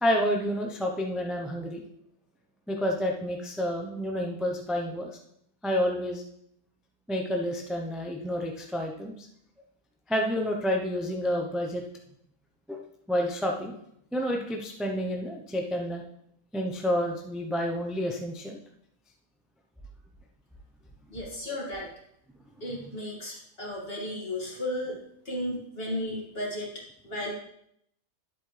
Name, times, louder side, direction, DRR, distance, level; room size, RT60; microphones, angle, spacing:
voice 1, 0.0-1.8 2.7-5.2 5.6-6.2 7.1-9.3 10.1-11.8 12.7-12.8 13.1-13.8 14.1-16.0 16.5-18.6, equal, ahead, 1 dB, 0.4 m, -29 dB
voice 2, 21.1-21.9 22.6-26.7 27.0-27.3, left 1 dB, 40° left, -3 dB, 2.5 m, -34 dB
11.0 x 7.7 x 3.3 m, 0.73 s
omnidirectional pair, 1.6 m